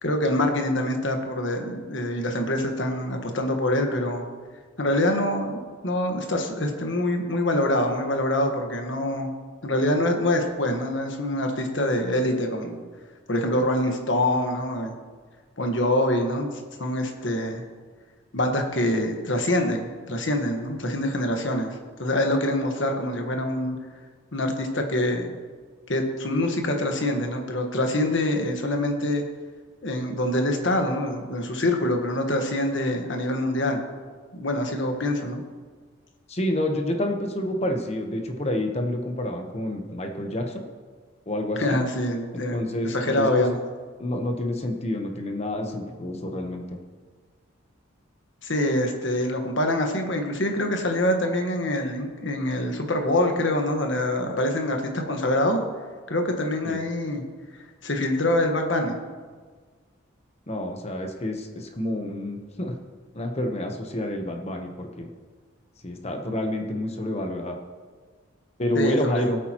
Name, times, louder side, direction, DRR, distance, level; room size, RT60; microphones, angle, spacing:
voice 1, 0.0-4.3 4.8-5.6 5.8-9.3 9.6-12.8 13.3-14.9 15.6-16.5 16.8-17.6 18.3-23.8 24.3-25.4 25.9-29.2 29.8-33.8 34.3-35.4 41.6-42.6 42.8-43.6 48.4-55.6 56.1-57.2 57.8-59.0 68.7-69.3, left 1 dB, 60° left, 3 dB, 1.4 m, -25 dB
voice 2, 36.3-40.6 41.3-41.8 42.3-43.5 44.0-46.8 56.6-56.8 60.5-62.7 63.1-65.1 65.8-67.6 68.6-69.4, left 1 dB, 30° left, 3 dB, 1.0 m, -28 dB
18.5 x 8.6 x 3.0 m, 1.5 s
head